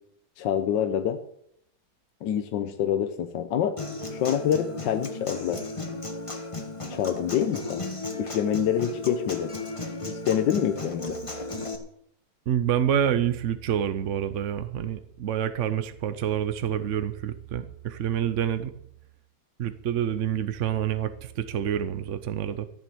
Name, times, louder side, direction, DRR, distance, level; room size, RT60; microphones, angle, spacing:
voice 1, 0.4-1.2 2.2-3.8 4.1-5.6 6.8-7.8 8.2-9.5 10.1-11.2, left 9 dB, 85° left, 8 dB, 1.5 m, -26 dB
Human voice / Acoustic guitar, 3.8-11.8, left 2 dB, 20° left, 1.5 m, -35 dB
voice 2, 12.5-18.7 19.6-22.7, right 9 dB, 55° right, 11 dB, 0.9 m, -27 dB
14.5 x 7.2 x 7.9 m, 0.73 s
omnidirectional pair, 1.9 m